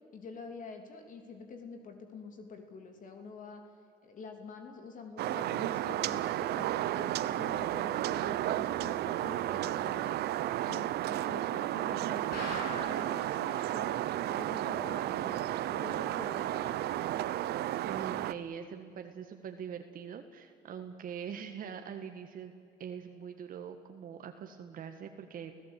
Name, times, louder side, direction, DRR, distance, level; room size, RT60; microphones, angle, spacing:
voice 1, 0.1-3.6 4.0-10.2 10.6-14.0 14.3-16.8, left 4 dB, 50° left, 5 dB, 3.1 m, -47 dB
sound 1, 5.2-18.3, right 13 dB, 70° right, 0.8 m, -33 dB
sound 2, 12.3-13.2 13.6-13.7 13.9-14.0 14.5-14.6, left 2 dB, 70° left, 7.8 m, -40 dB
voice 2, 17.8-22.5 22.8-25.6, right 7 dB, 55° right, 6 dB, 1.6 m, -43 dB
29.5 x 16.5 x 8.6 m, 2.5 s
cardioid pair, 110°, 17 cm